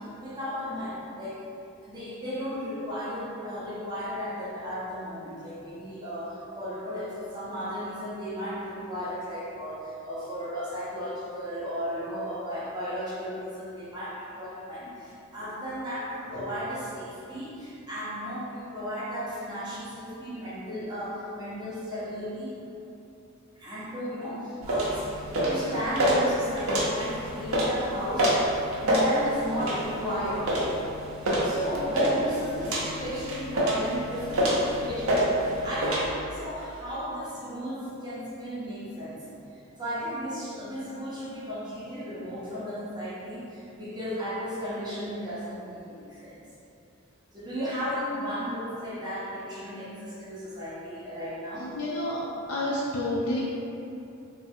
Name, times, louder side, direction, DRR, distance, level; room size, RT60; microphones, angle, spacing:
voice 1, 0.0-1.4 1.8-22.5 23.6-28.5 28.8-30.6 31.4-39.3 39.5-46.4 47.3-51.7 52.7-52.8, equal, 20° right, -10 dB, 0.6 m, -35 dB
sound 1, 24.6-36.0, equal, 75° right, 0.6 m, -27 dB
voice 2, 51.6-52.2 52.5-53.4, left 1 dB, 75° left, -6 dB, 0.4 m, -29 dB
3.1 x 2.3 x 2.6 m, 2.8 s
head